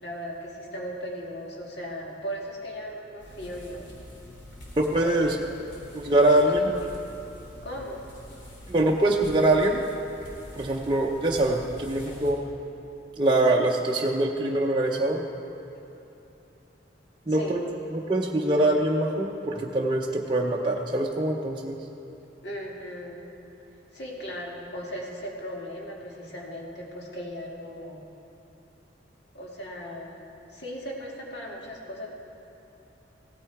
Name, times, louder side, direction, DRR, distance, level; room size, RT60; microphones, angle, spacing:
voice 1, 0.0-3.9 5.0-5.4 6.3-7.0 7.6-8.0 17.3-17.7 22.4-23.3 23.9-28.1 29.3-30.2 30.5-32.1, equal, 65° left, -2 dB, 2.0 m, -37 dB
sound 1, 3.2-12.3, equal, 85° left, 2.8 m, -45 dB
voice 2, 4.8-5.3 5.9-6.7 8.7-9.8 10.6-12.4 13.2-15.2 17.3-17.6 17.9-21.8, right 1 dB, 25° right, -2 dB, 0.6 m, -23 dB
16.5 x 9.4 x 4.7 m, 2.9 s
head